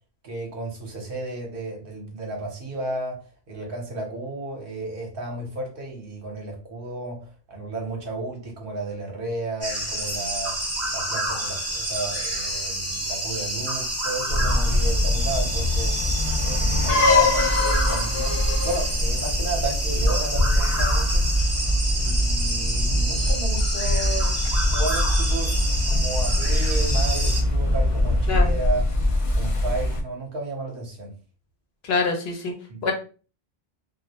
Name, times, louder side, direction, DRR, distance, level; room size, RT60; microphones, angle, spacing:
voice 1, 0.2-10.6 10.9-16.0 16.4-21.2 21.9-24.3 24.7-28.8 29.4-31.1 32.7-32.8, right 2 dB, 60° right, 0 dB, 0.9 m, -33 dB
sound 1, 9.6-27.4, right 1 dB, 20° right, 0.5 m, -28 dB
sound 2, 14.3-30.0, left 1 dB, 50° left, 0.4 m, -23 dB
voice 2, 31.9-32.5 32.8-32.9, left 4 dB, 75° left, 3 dB, 0.9 m, -24 dB
2.3 x 2.0 x 2.7 m, 0.37 s
omnidirectional pair, 1.1 m